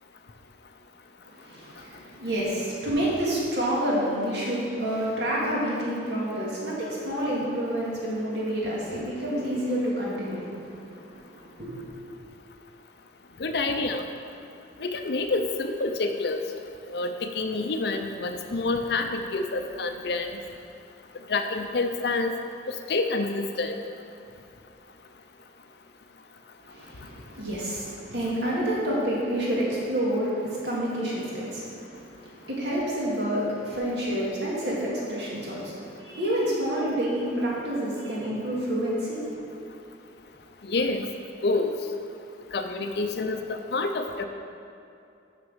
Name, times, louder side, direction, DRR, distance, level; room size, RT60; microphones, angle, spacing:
voice 1, 1.2-11.9 26.6-39.3, right 1 dB, 65° right, -5 dB, 2.1 m, -29 dB
voice 2, 13.4-14.0 14.8-16.4 16.9-20.3 21.3-22.3 22.9-23.8 40.6-41.1 41.4-41.7 42.5-44.2, left 3 dB, 60° left, 6 dB, 0.6 m, -27 dB
6.4 x 6.0 x 6.1 m, 2.6 s
head